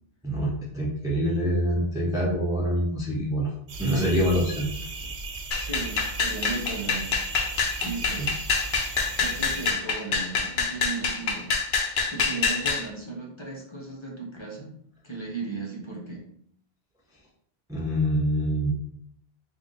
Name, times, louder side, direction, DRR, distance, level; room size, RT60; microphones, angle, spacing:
voice 1, 0.2-3.5 3.8-4.7 17.7-18.7, equal, 5° right, -4 dB, 0.6 m, -25 dB
sound 1, 3.7-9.7, right 3 dB, 55° right, 0.7 m, -37 dB
sound 2, 5.5-12.9, left 5 dB, 60° left, 0.8 m, -26 dB
voice 2, 5.5-7.2 7.4-8.3 9.1-14.7 15.0-16.3, right 3 dB, 30° left, -3 dB, 0.8 m, -36 dB
3.7 x 2.5 x 3.8 m, 0.66 s
omnidirectional pair, 1.0 m